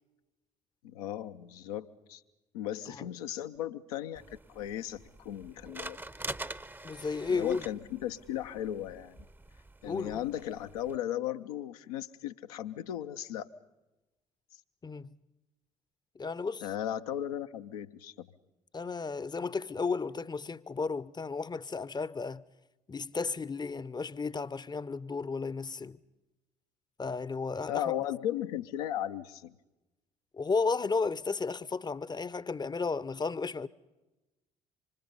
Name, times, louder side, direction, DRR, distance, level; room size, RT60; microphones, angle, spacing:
voice 1, 0.8-2.2 2.5-4.2 4.5-6.0 7.3-9.2 9.8-13.5 16.6-18.3 27.7-29.5, left 11 dB, 75° left, 0.7 m, -36 dB
sound 1, 4.1-11.0, right 2 dB, 10° right, 0.7 m, -45 dB
voice 2, 6.8-7.6 9.9-10.2 14.8-15.2 16.2-16.7 18.7-22.4 22.9-26.0 27.0-27.8 30.3-33.7, left 4 dB, 20° left, 0.7 m, -33 dB
26.5 x 25.5 x 5.5 m
figure-of-eight pair, 50°, 19 cm